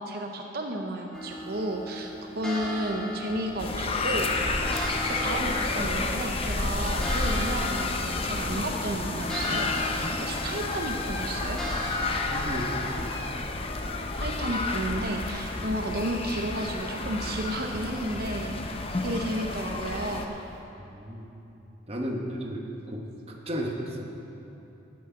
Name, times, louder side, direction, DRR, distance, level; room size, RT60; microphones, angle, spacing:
voice 1, 0.0-4.4 5.1-11.6 14.2-18.6 19.0-20.3, right 1 dB, 50° right, 2 dB, 0.7 m, -32 dB
sound 1, 1.1-20.4, left 1 dB, 5° left, 1.3 m, -39 dB
sound 2, 3.6-20.3, left 3 dB, 30° left, 0.6 m, -30 dB
voice 2, 11.9-13.1 20.9-21.2 21.9-24.1, equal, 30° right, 1 dB, 1.1 m, -34 dB
15.5 x 6.3 x 5.8 m, 3.0 s
head